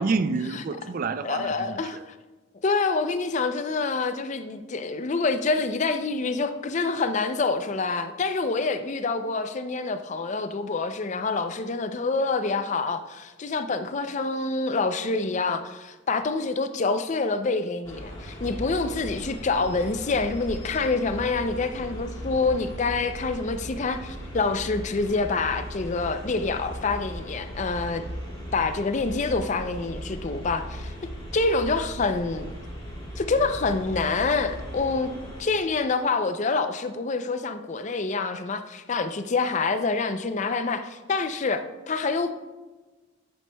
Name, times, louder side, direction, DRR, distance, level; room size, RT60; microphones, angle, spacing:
voice 1, 0.0-2.0, right 4 dB, 40° right, 0.3 m, -28 dB
voice 2, 1.2-2.0 2.6-28.0 28.5-30.9 31.3-32.5 33.2-35.1 35.4-42.3, left 3 dB, 35° left, 0.4 m, -26 dB
sound 1, 17.8-35.4, equal, 20° left, 2.1 m, -41 dB
sound 2, 18.5-34.9, equal, 90° right, 0.7 m, -40 dB
10.5 x 8.0 x 2.2 m
head